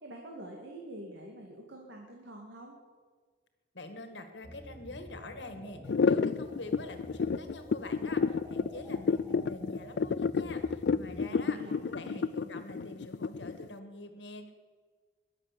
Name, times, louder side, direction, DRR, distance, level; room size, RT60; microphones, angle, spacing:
voice 1, 0.0-2.8 11.2-12.3, right 1 dB, 90° right, 0 dB, 2.2 m, -46 dB
voice 2, 3.7-11.6 11.9-14.5, left 2 dB, 80° left, 8 dB, 1.8 m, -45 dB
sound 1, 4.4-11.2, equal, 20° right, 3.9 m, -50 dB
sound 2, 5.8-13.7, left 5 dB, 65° left, 0.4 m, -29 dB
21.0 x 7.4 x 6.9 m, 1.5 s
head